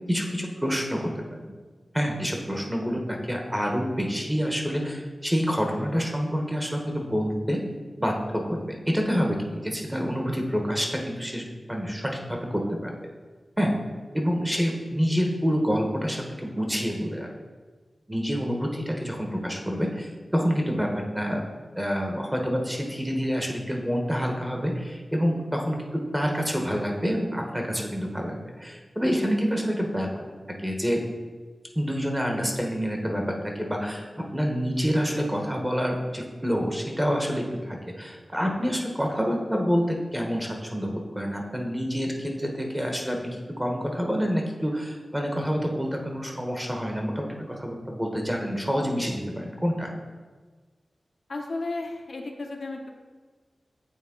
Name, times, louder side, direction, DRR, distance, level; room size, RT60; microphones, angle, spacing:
voice 1, 0.1-1.5 1.9-7.6 8.0-8.6 8.9-13.0 13.6-13.7 14.1-17.3 18.1-20.9 21.1-21.4 21.8-30.1 30.6-31.0 31.7-49.9, equal, 10° right, 1 dB, 1.1 m, -27 dB
voice 2, 51.3-52.9, left 2 dB, 70° left, 2 dB, 0.6 m, -33 dB
8.4 x 3.5 x 3.7 m, 1.4 s
cardioid pair, 55°, 0 cm